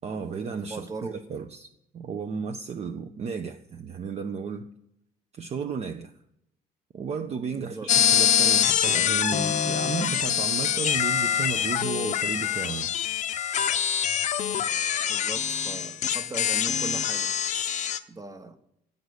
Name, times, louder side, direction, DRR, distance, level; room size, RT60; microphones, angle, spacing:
voice 1, 0.0-4.7 5.3-6.1 6.9-12.9, right 6 dB, 40° right, 0.5 m, -33 dB
voice 2, 0.7-1.2 7.5-7.9 15.1-17.3 18.1-18.6, right 3 dB, 20° right, 0.9 m, -39 dB
sound 1, 7.9-18.0, left 9 dB, 45° left, 0.5 m, -25 dB
8.0 x 5.2 x 6.4 m
cardioid pair, 110°, 17 cm